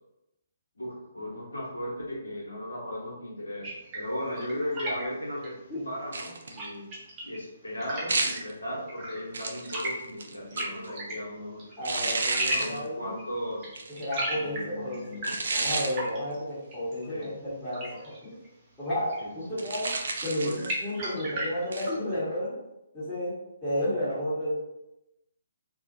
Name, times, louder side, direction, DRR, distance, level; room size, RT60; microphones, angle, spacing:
voice 1, 0.8-3.7 3.9-5.5 5.8-6.8 7.2-11.6 12.5-13.7 14.3-15.3 17.1-17.3 19.2-19.6 20.4-20.5, equal, 75° left, -4 dB, 0.9 m, -36 dB
sound 1, 3.6-22.1, right 1 dB, 25° right, 0.7 m, -39 dB
sound 2, 6.1-6.6 8.1-8.5 9.3-10.9 11.8-12.8 13.7-14.0 15.2-16.0 19.6-20.8 21.7-21.9, right 3 dB, 60° right, 0.3 m, -31 dB
voice 2, 11.8-13.1 13.9-18.4 18.8-19.9 20.2-22.6 22.9-23.3 23.6-24.5, equal, 10° left, -17 dB, 1.0 m, -32 dB
2.4 x 2.1 x 2.6 m, 0.89 s
figure-of-eight pair, 135°, 0 cm